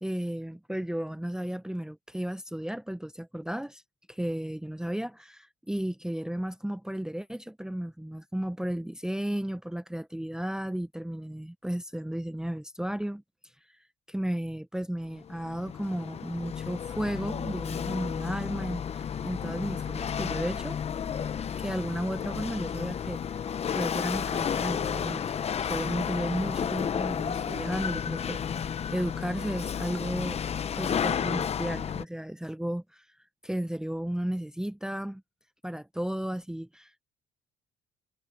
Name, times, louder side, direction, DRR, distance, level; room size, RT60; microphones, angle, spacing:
voice 1, 0.0-3.8 4.1-13.2 13.7-13.8 14.1-20.8 21.6-25.2 25.6-28.5 28.9-30.4 30.8-33.1 33.4-35.2 35.6-37.0, right 1 dB, 5° right, 0.9 m, -34 dB
Chatter / Hiss / Rattle, 15.1-32.0, left 8 dB, 40° left, 0.9 m, -32 dB
cardioid pair, 110°, 17 cm